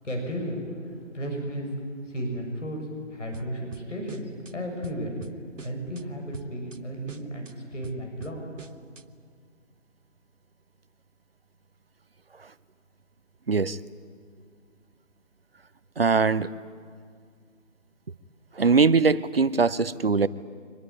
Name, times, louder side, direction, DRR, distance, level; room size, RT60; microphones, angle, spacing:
voice 1, 0.0-1.7 2.0-2.8 3.1-5.1 5.6-8.5, equal, 65° left, 2 dB, 6.6 m, -34 dB
sound 1, 3.3-4.5 4.8-6.0 6.3-6.8 7.1-9.0, right 4 dB, 70° right, 1.2 m, -44 dB
voice 2, 13.5-13.8 16.0-16.5 18.6-20.3, right 4 dB, 50° right, 17 dB, 0.7 m, -21 dB
24.0 x 20.0 x 10.0 m, 2.1 s
figure-of-eight pair, 160°, 39 cm